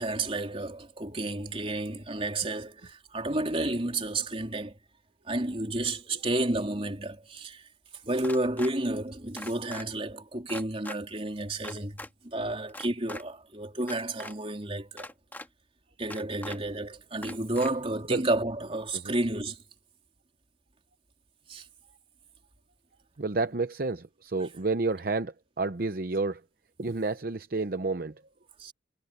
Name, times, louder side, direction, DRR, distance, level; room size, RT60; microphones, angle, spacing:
voice 1, 0.0-4.8 5.2-7.7 8.0-15.1 16.0-19.6 21.5-21.7 28.6-28.7, right 2 dB, 30° right, 3.4 m, -31 dB
sound 1, 8.2-8.7 9.4-9.9 10.5-11.0 11.6-12.1 12.7-13.2 13.8-14.3 15.0-15.5 16.1-16.6 17.2-17.7, left 2 dB, 10° left, 2.2 m, -41 dB
voice 2, 23.2-26.4 26.8-28.2, right 3 dB, 50° right, 0.7 m, -30 dB
head